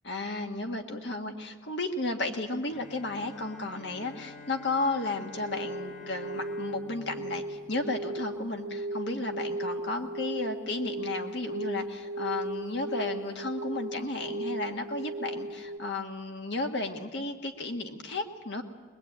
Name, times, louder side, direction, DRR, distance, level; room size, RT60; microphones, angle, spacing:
voice 1, 0.0-18.6, left 2 dB, 65° left, 4 dB, 1.6 m, -33 dB
Bowed string instrument, 2.7-8.6, left 4 dB, 40° left, 3.3 m, -49 dB
sound 1, 5.3-15.8, right 1 dB, 80° right, 1.5 m, -36 dB
22.0 x 22.0 x 8.8 m, 1.5 s
head